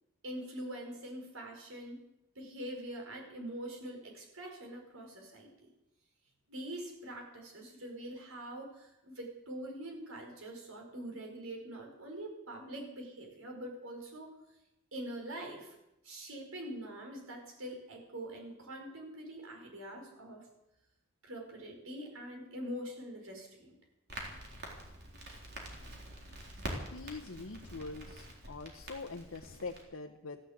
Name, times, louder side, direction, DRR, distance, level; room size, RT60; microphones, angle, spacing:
voice 1, 0.2-2.0 2.3-5.7 6.5-14.3 14.9-15.7 16.0-20.5 21.2-23.7, right 1 dB, 80° right, 1 dB, 5.1 m, -44 dB
Crackle, 24.1-29.8, right 1 dB, 50° right, 3.9 m, -45 dB
voice 2, 26.9-30.4, left 3 dB, 80° left, 2 dB, 1.1 m, -44 dB
15.0 x 12.0 x 8.1 m, 0.90 s
head